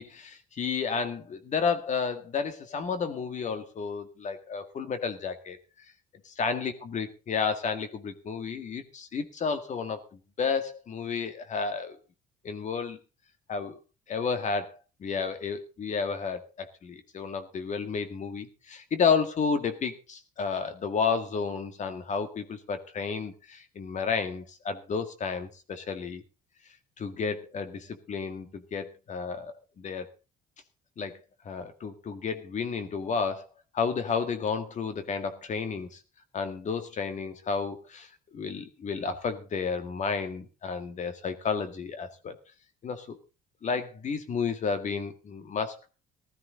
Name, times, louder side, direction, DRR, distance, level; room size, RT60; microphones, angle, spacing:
voice 1, 0.0-5.6 6.4-10.0 10.4-12.0 12.4-13.0 13.5-13.8 14.1-26.2 27.0-30.1 31.0-31.2 31.5-33.4 33.7-36.0 36.3-42.4 42.8-43.2 43.6-45.9, left 5 dB, 45° left, 9 dB, 2.0 m, -31 dB
15.5 x 13.0 x 3.9 m, 0.32 s
cardioid pair, 110°, 17 cm